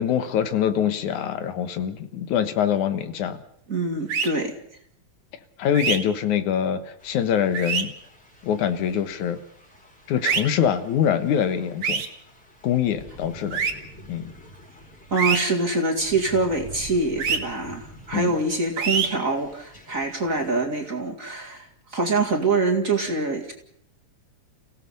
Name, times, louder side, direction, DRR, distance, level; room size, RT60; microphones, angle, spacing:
voice 1, 0.0-3.4 5.6-7.9 8.4-9.4 10.1-12.0 12.6-13.6 14.1-14.3 18.1-18.3, left 9 dB, 85° left, 10 dB, 2.8 m, -24 dB
voice 2, 3.7-4.5 15.1-23.5, right 3 dB, 30° right, 1 dB, 2.2 m, -25 dB
sound 1, 4.1-4.3 5.7-6.0 7.5-7.8 10.2-10.4 11.8-12.1 13.5-13.7 15.2-15.4 17.2-17.4 18.8-19.1, right 6 dB, 60° right, 2.5 m, -24 dB
Thunder / Rain, 7.0-20.6, equal, 25° left, 5.3 m, -47 dB
30.0 x 16.5 x 5.4 m, 0.67 s
omnidirectional pair, 3.3 m